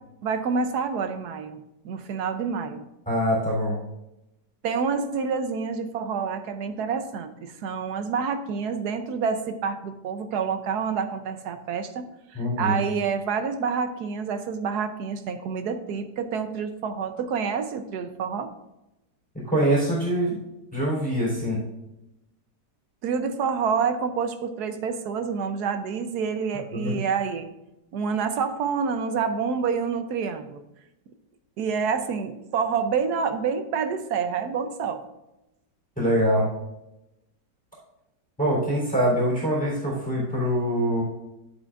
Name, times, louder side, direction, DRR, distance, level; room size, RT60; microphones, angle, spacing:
voice 1, 0.2-2.8 4.6-18.5 23.0-27.5 27.9-30.6 31.6-35.0, right 6 dB, 70° right, 9 dB, 1.2 m, -28 dB
voice 2, 3.0-3.7 12.3-12.8 19.5-20.4 20.7-21.6 26.7-27.0 36.0-36.5 38.4-41.0, equal, 5° left, -5 dB, 3.4 m, -24 dB
11.5 x 8.7 x 2.5 m, 0.91 s
omnidirectional pair, 1.9 m